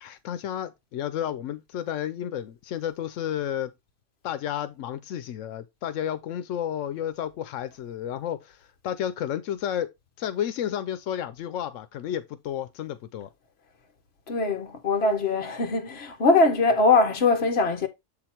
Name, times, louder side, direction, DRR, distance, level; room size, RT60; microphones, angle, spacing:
voice 1, 0.0-3.7 4.2-9.9 10.2-13.3, left 10 dB, 90° left, 1.0 m, -32 dB
voice 2, 14.3-17.9, left 3 dB, 55° left, 1.3 m, -22 dB
7.2 x 3.9 x 4.3 m
omnidirectional pair, 1.3 m